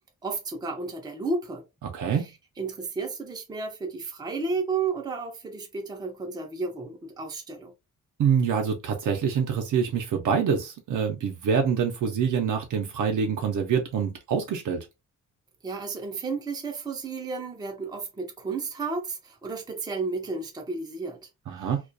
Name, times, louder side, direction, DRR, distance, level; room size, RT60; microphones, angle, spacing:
voice 1, 0.2-1.6 2.6-7.7 15.6-21.3 21.6-21.7, right 4 dB, 15° right, 0.5 m, -32 dB
voice 2, 1.9-2.3 8.2-14.9 21.5-21.8, right 6 dB, 70° right, 0.6 m, -25 dB
2.3 x 2.2 x 2.5 m
wide cardioid pair, 165°, 32 cm